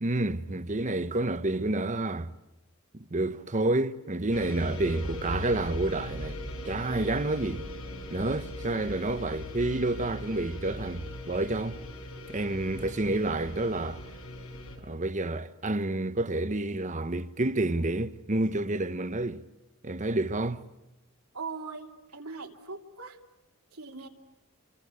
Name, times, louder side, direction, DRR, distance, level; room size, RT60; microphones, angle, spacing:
voice 1, 0.0-2.3 2.9-6.4 6.6-7.6 8.1-11.8 12.3-14.0 14.8-19.4 19.8-20.6, right 2 dB, 35° right, 1.0 m, -29 dB
sound 1, 4.3-14.8, left 1 dB, 85° left, 5.0 m, -39 dB
voice 2, 21.3-21.9 22.1-23.1 23.8-24.1, right 4 dB, 85° right, 2.8 m, -39 dB
28.0 x 25.0 x 8.2 m
head